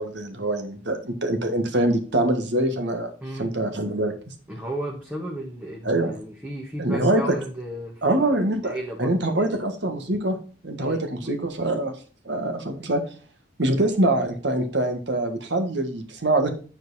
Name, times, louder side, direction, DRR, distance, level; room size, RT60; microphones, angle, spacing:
voice 1, 0.0-3.1 3.4-4.3 5.8-6.2 6.8-7.3 8.0-8.7 9.0-10.4 10.6-11.9 12.2-13.0 13.6-16.5, right 1 dB, 65° right, 6 dB, 1.6 m, -24 dB
voice 2, 3.2-3.5 4.5-8.2 8.6-9.5 10.8-11.4, right 1 dB, 10° right, -3 dB, 1.4 m, -34 dB
9.6 x 4.6 x 4.1 m, 0.39 s
head